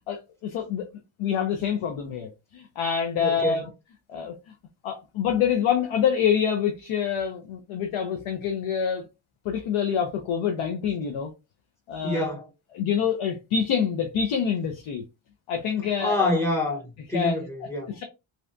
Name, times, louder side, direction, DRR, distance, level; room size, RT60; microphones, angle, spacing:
voice 1, 0.1-0.9 1.2-3.7 4.1-4.3 4.8-9.1 9.4-11.3 11.9-12.3 12.7-15.0 15.5-16.3 17.1-17.4 17.9-18.0, left 7 dB, 90° left, 0.6 m, -26 dB
voice 2, 3.2-3.6 12.0-12.5 16.0-18.0, left 1 dB, 5° left, 0.8 m, -27 dB
2.6 x 2.1 x 2.4 m
wide cardioid pair, 150°, 48 cm